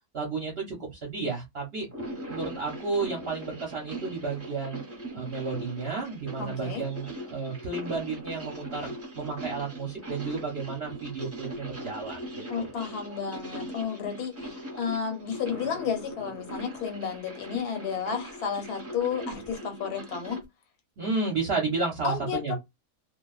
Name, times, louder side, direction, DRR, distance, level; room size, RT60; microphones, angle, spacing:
voice 1, 0.1-1.9 2.3-4.8 5.1-12.7 21.0-22.6, right 4 dB, 50° right, 0.8 m, -32 dB
sound 1, 1.8-20.4, right 1 dB, 10° right, 0.8 m, -40 dB
voice 2, 6.4-6.9 12.5-20.4 22.0-22.6, left 7 dB, 90° left, 1.2 m, -32 dB
2.4 x 2.2 x 2.3 m
omnidirectional pair, 1.6 m